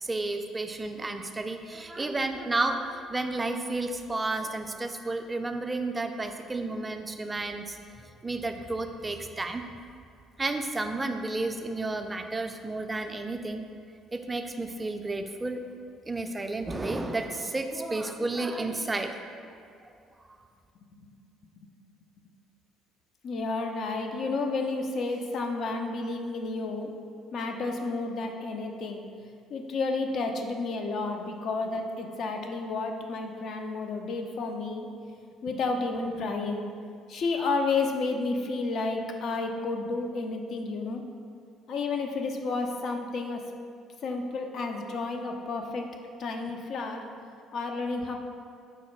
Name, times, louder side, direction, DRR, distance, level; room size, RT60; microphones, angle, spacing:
voice 1, 0.0-7.8 8.2-9.6 10.4-13.7 14.1-15.6 16.1-19.1, right 2 dB, 20° right, 6 dB, 0.3 m, -31 dB
voice 2, 23.2-26.9 27.3-29.0 29.5-34.9 35.4-36.6 37.1-41.0 41.7-43.4 44.0-45.9 46.2-47.0 47.5-48.1, left 3 dB, 60° left, 3 dB, 0.4 m, -31 dB
4.7 x 2.2 x 4.3 m, 2.3 s
hypercardioid pair, 60°, 0 cm